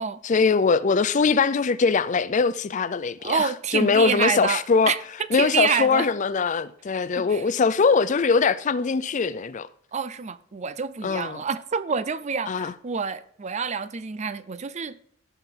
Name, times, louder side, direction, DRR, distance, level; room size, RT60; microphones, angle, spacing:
voice 1, 0.2-4.9 5.3-9.7 11.0-11.4 12.5-12.7, left 5 dB, 40° left, 0.4 m, -22 dB
voice 2, 3.2-6.1 7.2-7.4 9.9-15.0, right 6 dB, 35° right, 0.5 m, -28 dB
17.0 x 5.8 x 3.7 m
head